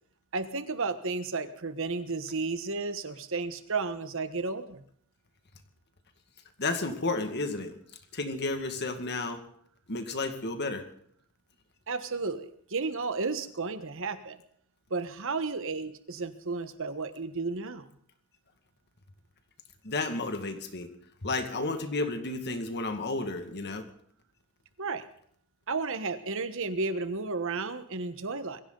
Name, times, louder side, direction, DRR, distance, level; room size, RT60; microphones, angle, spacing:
voice 1, 0.3-4.8 11.9-14.4 14.9-17.9 24.8-25.0 25.7-28.6, right 4 dB, 60° right, 10 dB, 1.3 m, -33 dB
voice 2, 6.6-7.7 8.1-9.4 9.9-10.9 19.8-20.9 21.2-23.9, left 3 dB, 50° left, 7 dB, 2.0 m, -32 dB
22.5 x 15.5 x 4.0 m, 0.64 s
head